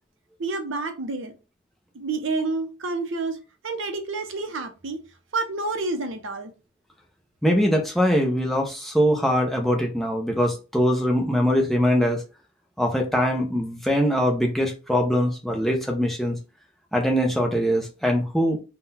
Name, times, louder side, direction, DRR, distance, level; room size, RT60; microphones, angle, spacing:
voice 1, 0.4-1.3 1.9-3.4 3.6-5.0 5.3-6.5, right 3 dB, 65° right, 0.7 m, -29 dB
voice 2, 7.4-12.2 12.8-16.4 16.9-18.6, equal, ahead, 0.6 m, -22 dB
3.9 x 2.3 x 4.0 m
head